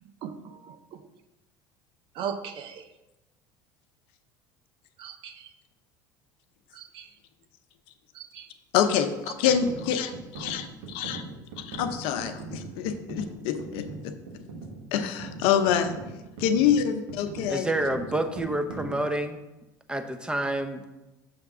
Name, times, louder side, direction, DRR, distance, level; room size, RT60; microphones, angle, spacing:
voice 1, 2.2-2.8 5.0-5.5 6.7-7.1 8.2-8.5, right 7 dB, 60° right, 10 dB, 0.6 m, -37 dB
voice 2, 8.7-11.2 11.6-14.1 14.9-15.9 16.4-17.7, left 8 dB, 70° left, 9 dB, 0.7 m, -26 dB
sound 1, 9.5-19.1, right 3 dB, 75° right, 1.2 m, -41 dB
voice 3, 17.5-19.4 19.9-20.9, right 1 dB, 10° right, 7 dB, 0.7 m, -28 dB
6.6 x 3.4 x 6.0 m, 1.0 s
supercardioid pair, 90°, 10 cm